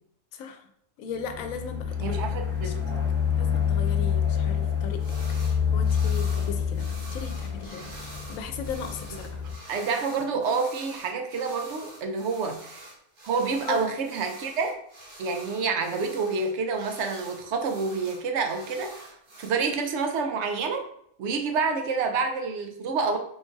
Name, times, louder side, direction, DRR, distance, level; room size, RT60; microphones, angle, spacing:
voice 1, 0.3-0.7 1.0-2.2 2.6-2.7 3.3-5.1 5.4-9.4 13.6-13.9, left 6 dB, 80° left, 8 dB, 1.0 m, -37 dB
sound 1, 1.2-9.5, left 7 dB, 15° left, 0.5 m, -27 dB
voice 2, 2.0-2.8 9.7-12.9 13.2-14.7 15.2-20.9 21.2-23.2, right 4 dB, 65° right, 5 dB, 0.8 m, -28 dB
sound 2, 5.0-5.6 5.8-19.5, right 1 dB, 45° right, 1.1 m, -46 dB
3.8 x 2.4 x 3.7 m, 0.69 s
omnidirectional pair, 1.4 m